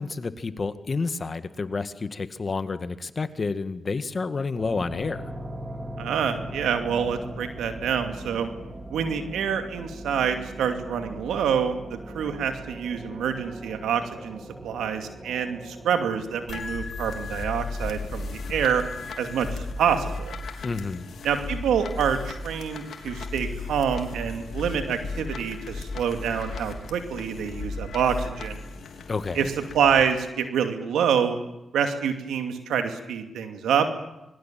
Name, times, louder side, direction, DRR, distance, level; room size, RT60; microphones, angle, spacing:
voice 1, 0.0-5.3 20.6-21.1 29.1-29.5, left 4 dB, 45° left, 11 dB, 1.8 m, -30 dB
sound 1, 4.6-16.6, right 1 dB, 20° right, 3.5 m, -39 dB
voice 2, 6.0-8.5 8.9-18.8 19.2-20.4 21.2-28.6 29.3-29.4 29.7-31.4 31.7-33.9, right 7 dB, 85° right, 6 dB, 2.6 m, -26 dB
sound 2, 16.5-30.0, left 3 dB, 70° left, 3.4 m, -35 dB
25.5 x 21.0 x 7.6 m, 0.93 s
supercardioid pair, 50°, 0 cm